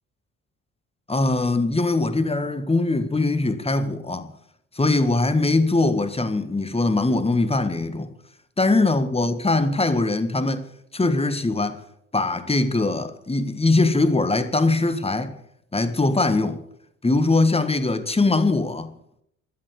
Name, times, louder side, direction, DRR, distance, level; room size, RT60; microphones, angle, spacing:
voice 1, 1.1-4.3 4.7-8.1 8.6-10.6 10.9-11.8 12.1-15.3 15.7-16.6 17.0-18.9, left 2 dB, 15° left, 1.6 m, -21 dB
13.0 x 9.3 x 8.1 m
figure-of-eight pair, 45°, 42 cm